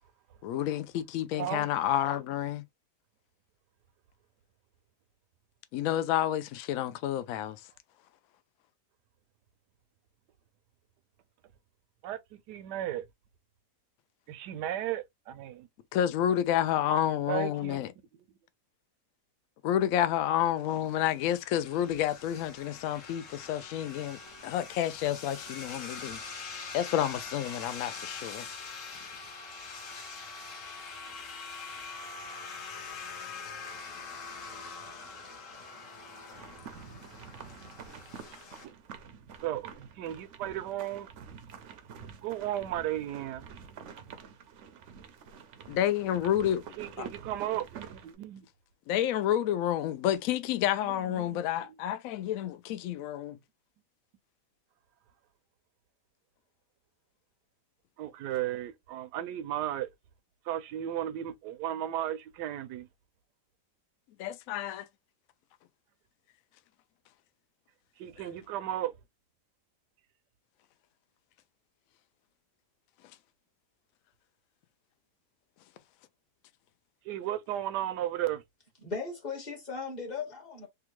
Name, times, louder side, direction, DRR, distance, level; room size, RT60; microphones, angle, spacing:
voice 1, 0.4-2.6 5.7-7.6 15.9-17.9 19.6-26.2 26.7-28.5 29.9-30.0 45.7-46.6 47.0-47.1 48.9-53.4 64.2-64.9 68.2-68.3, left 11 dB, 70° left, 0.8 m, -29 dB
voice 2, 1.4-1.7 12.0-13.0 14.3-15.7 17.3-17.8 39.4-41.1 42.2-43.4 46.8-48.5 51.1-51.4 58.0-59.9 60.5-62.9 68.0-68.9 77.1-78.4, right 12 dB, 80° right, 1.2 m, -35 dB
sound 1, 20.7-38.7, left 4 dB, 55° left, 1.2 m, -44 dB
sound 2, 36.3-48.2, right 7 dB, 65° right, 0.8 m, -48 dB
voice 3, 78.8-80.7, left 4 dB, 30° left, 1.3 m, -37 dB
3.5 x 2.3 x 3.0 m
omnidirectional pair, 1.8 m